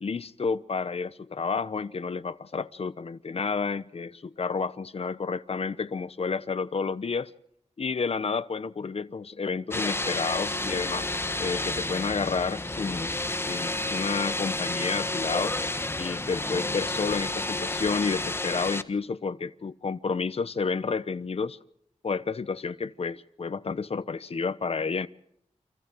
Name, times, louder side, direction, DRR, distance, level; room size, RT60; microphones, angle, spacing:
voice 1, 0.0-7.3 7.8-11.1 11.4-13.1 13.5-15.5 16.0-21.6 22.0-25.1, left 5 dB, 50° left, 1.0 m, -30 dB
sound 1, 9.7-18.8, left 2 dB, 20° left, 1.3 m, -30 dB
30.0 x 25.5 x 4.7 m
wide cardioid pair, 110°, 13 cm